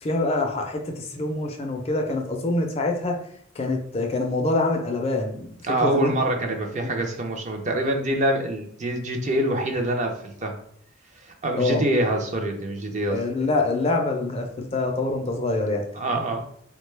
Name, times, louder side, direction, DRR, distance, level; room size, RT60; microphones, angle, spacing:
voice 1, 0.0-3.2 3.6-5.5 5.8-6.1 6.8-6.9 11.5-11.8 13.1-15.8, left 2 dB, 30° left, 3 dB, 0.4 m, -25 dB
voice 2, 5.6-10.5 11.2-13.2 15.9-16.4, right 1 dB, 35° right, 3 dB, 0.5 m, -25 dB
3.6 x 2.2 x 3.2 m, 0.67 s
head